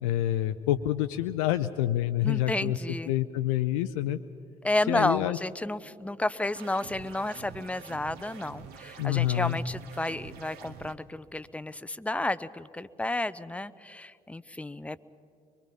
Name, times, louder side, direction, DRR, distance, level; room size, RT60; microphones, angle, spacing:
voice 1, 0.0-4.2 4.9-5.4 9.0-9.6, left 13 dB, 75° left, 10 dB, 0.5 m, -27 dB
voice 2, 2.2-3.1 4.6-15.0, left 2 dB, 5° left, 15 dB, 0.6 m, -31 dB
sound 1, 6.6-10.9, right 7 dB, 60° right, 1.1 m, -46 dB
23.5 x 23.0 x 5.4 m, 2.5 s
figure-of-eight pair, 50°, 18 cm